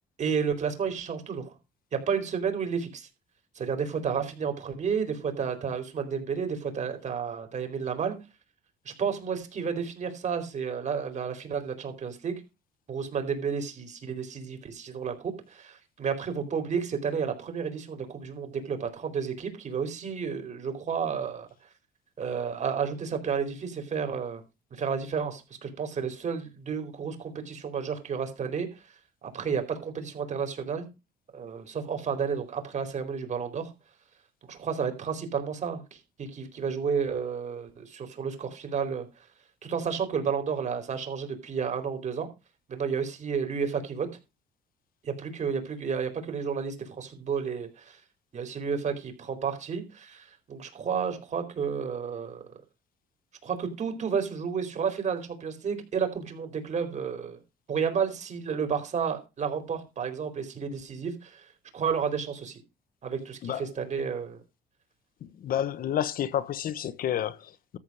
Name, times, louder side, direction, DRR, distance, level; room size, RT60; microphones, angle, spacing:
voice 1, 0.2-1.5 1.9-3.1 3.5-8.2 8.8-12.3 12.9-21.5 22.2-24.4 24.7-28.8 29.2-30.9 31.3-33.7 34.5-39.1 39.6-42.3 42.7-44.1 45.0-48.0 48.3-52.4 53.4-57.4 57.7-61.4 61.7-62.6 63.0-64.4, right 6 dB, 45° right, 4.3 m, -31 dB
voice 2, 65.2-67.8, left 10 dB, 60° left, 1.2 m, -30 dB
13.5 x 7.2 x 4.9 m
cardioid pair, 110°, 17 cm